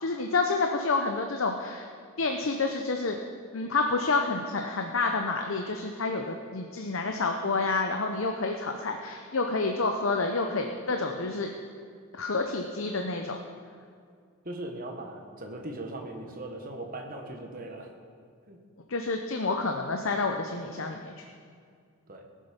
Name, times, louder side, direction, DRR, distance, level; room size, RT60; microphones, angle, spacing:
voice 1, 0.0-1.8 2.2-3.2 3.5-11.5 12.1-13.4 18.9-21.1, left 3 dB, 60° left, 4 dB, 0.8 m, -29 dB
voice 2, 14.4-17.9 18.5-18.6 22.1-22.2, right 1 dB, 40° right, 2 dB, 1.5 m, -39 dB
18.0 x 7.5 x 5.3 m, 2.2 s
head